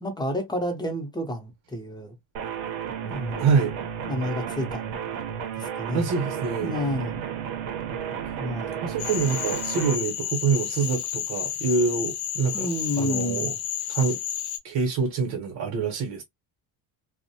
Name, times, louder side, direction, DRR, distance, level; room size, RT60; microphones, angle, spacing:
voice 1, 0.0-2.1 3.0-3.5 4.0-4.9 5.6-6.1 6.6-7.2 8.1-8.8 12.5-13.6, equal, 10° left, 0.7 m, -30 dB
sound 1, 2.3-10.0, right 8 dB, 90° right, 0.8 m, -33 dB
voice 2, 3.4-3.7 5.9-6.7 8.8-12.7 13.0-13.5 13.9-14.2 14.6-16.2, right 5 dB, 60° right, 0.9 m, -25 dB
Cricket / Frog, 9.0-14.6, left 10 dB, 65° left, 0.5 m, -31 dB
2.5 x 2.1 x 2.6 m
cardioid pair, 125°, 44 cm